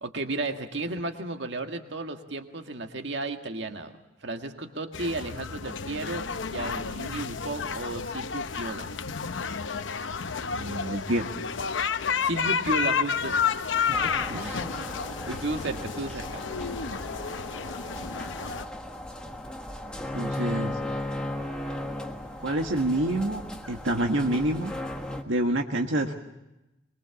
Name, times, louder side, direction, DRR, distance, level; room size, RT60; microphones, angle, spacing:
voice 1, 0.0-3.9 4.2-8.9 12.2-13.3 13.7-14.8 15.2-16.4, right 2 dB, 65° right, 5 dB, 1.8 m, -34 dB
sound 1, 4.9-18.6, left 6 dB, 75° left, 0.8 m, -31 dB
voice 2, 10.5-11.3 14.4-14.5 20.1-20.8 22.4-23.4 23.7-24.7 25.3-26.1, right 1 dB, 80° right, 3 dB, 1.6 m, -27 dB
sound 2, 13.9-25.2, left 1 dB, 5° left, 1.5 m, -36 dB
24.0 x 22.5 x 7.0 m, 0.95 s
head